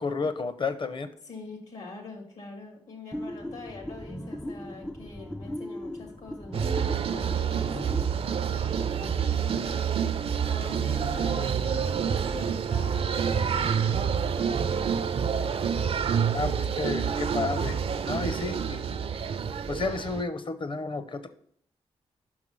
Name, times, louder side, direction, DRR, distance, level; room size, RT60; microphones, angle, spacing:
voice 1, 0.0-1.1 16.3-17.8 18.1-18.8 19.7-21.3, left 4 dB, 45° left, 11 dB, 0.8 m, -31 dB
voice 2, 1.2-8.2 8.5-10.0 10.5-15.0, left 3 dB, 80° left, 2 dB, 2.2 m, -45 dB
sound 1, 3.1-8.2, left 1 dB, 5° left, 0.4 m, -38 dB
sound 2, 6.5-20.2, right 7 dB, 55° right, 0.4 m, -28 dB
5.9 x 4.7 x 5.4 m, 0.62 s
cardioid pair, 50°, 12 cm